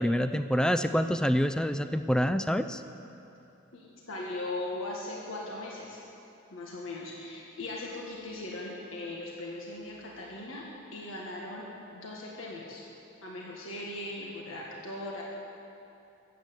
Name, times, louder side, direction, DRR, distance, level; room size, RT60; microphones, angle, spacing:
voice 1, 0.0-2.8, equal, 5° left, 10 dB, 0.4 m, -26 dB
voice 2, 3.7-6.0 6.5-12.8 13.2-15.2, left 2 dB, 70° left, -3 dB, 1.7 m, -39 dB
13.5 x 8.4 x 8.0 m, 2.8 s
head